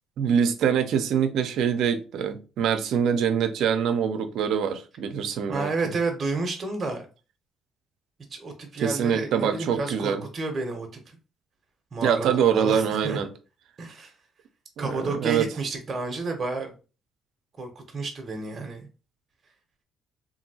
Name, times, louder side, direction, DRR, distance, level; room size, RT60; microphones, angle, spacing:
voice 1, 0.2-5.7 8.8-10.2 12.0-13.3 14.8-15.5, right 7 dB, 75° right, 0.5 m, -24 dB
voice 2, 5.5-7.1 8.3-11.2 11.9-13.2 13.8-14.1 14.8-16.7 17.6-18.9, right 3 dB, 40° right, 0.7 m, -31 dB
2.8 x 2.6 x 2.7 m
supercardioid pair, 75°, 0 cm